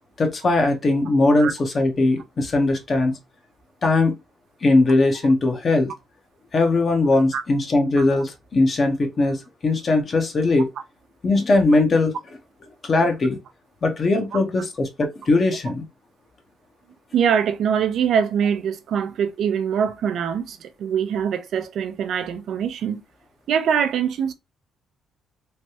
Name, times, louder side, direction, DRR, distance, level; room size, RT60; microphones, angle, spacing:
voice 1, 0.2-3.1 3.8-4.1 4.6-5.9 6.5-10.7 11.2-12.1 12.8-13.4 13.8-15.8, left 2 dB, 40° left, 0.8 m, -20 dB
voice 2, 17.1-23.0 23.5-24.3, right 7 dB, 70° right, 0.5 m, -23 dB
3.1 x 2.2 x 2.8 m
cardioid pair, 90°, 0 cm